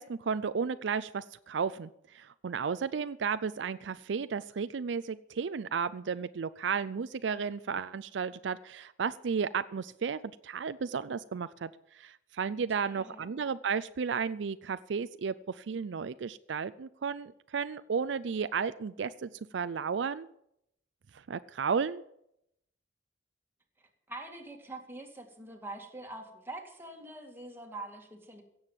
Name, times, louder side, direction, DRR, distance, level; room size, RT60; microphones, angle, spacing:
voice 1, 0.0-20.3 21.3-22.0, right 6 dB, 75° right, 14 dB, 0.4 m, -33 dB
voice 2, 12.8-13.3 24.1-28.4, right 2 dB, 15° right, 2 dB, 2.2 m, -44 dB
16.5 x 7.9 x 7.4 m, 0.77 s
head